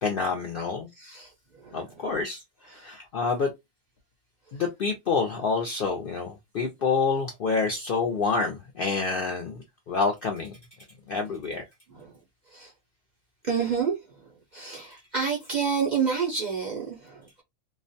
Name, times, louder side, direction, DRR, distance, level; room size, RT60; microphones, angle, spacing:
voice 1, 0.0-0.9 1.7-3.5 4.5-10.6 11.1-11.6, left 4 dB, 65° left, 0.5 m, -28 dB
voice 2, 1.0-1.3 1.6-1.9 11.9-12.1 12.5-12.7 13.4-14.0 14.5-17.4, right 6 dB, 50° right, 0.6 m, -29 dB
2.4 x 2.1 x 2.5 m
omnidirectional pair, 1.5 m